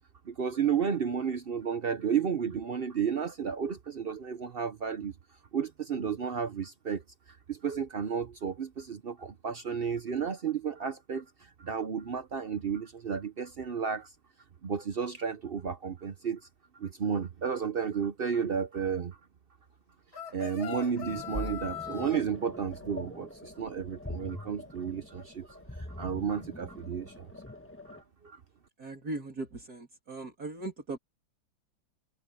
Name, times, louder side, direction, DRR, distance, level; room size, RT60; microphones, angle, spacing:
voice 1, 0.3-5.1 5.5-7.0 7.5-14.1 14.6-16.4 16.7-19.2 20.1-27.3 27.9-28.0 28.2-28.4, right 7 dB, 65° right, 0.5 m, -32 dB
sound 1, 20.1-22.2, left 7 dB, 85° left, 3.6 m, -40 dB
sound 2, 21.0-28.0, left 1 dB, 10° left, 1.1 m, -43 dB
voice 2, 28.8-31.0, right 2 dB, 50° right, 3.6 m, -39 dB
omnidirectional pair, 2.1 m